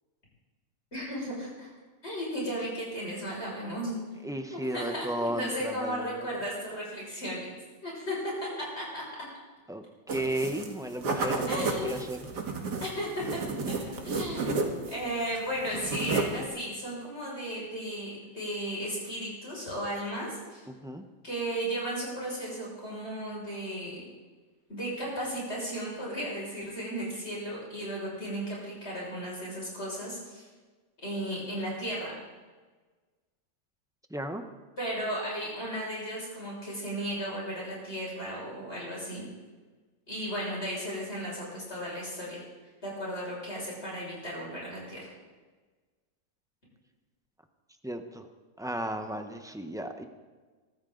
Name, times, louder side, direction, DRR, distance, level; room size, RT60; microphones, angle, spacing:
voice 1, 0.9-1.7 2.0-4.0 4.5-7.5 7.8-9.0 11.5-11.9 12.8-13.4 13.7-13.8 14.0-20.6 21.2-24.0 24.7-30.5 31.0-32.2 34.8-39.2 40.1-42.4 42.8-45.1, equal, 35° left, -5 dB, 6.5 m, -35 dB
voice 2, 4.2-6.3 9.7-12.3 20.7-21.0 34.1-34.4 47.8-48.3 48.6-50.0, right 1 dB, 5° right, 6 dB, 0.5 m, -34 dB
sound 1, 10.1-10.7 11.0-15.0 15.3-16.4, right 3 dB, 70° right, 2.2 m, -32 dB
23.5 x 13.5 x 3.9 m, 1.3 s
omnidirectional pair, 1.9 m